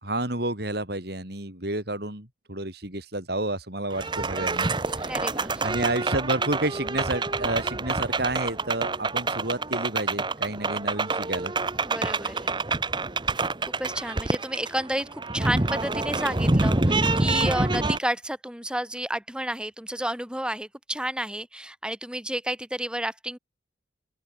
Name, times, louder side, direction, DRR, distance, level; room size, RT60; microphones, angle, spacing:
voice 1, 0.0-4.7 5.6-11.5, right 1 dB, 55° right, 4.9 m, -30 dB
sound 1, 3.9-18.0, right 3 dB, 25° right, 1.1 m, -27 dB
voice 2, 5.0-5.7 11.8-12.5 13.8-23.4, right 1 dB, 5° right, 5.3 m, -31 dB
open air
head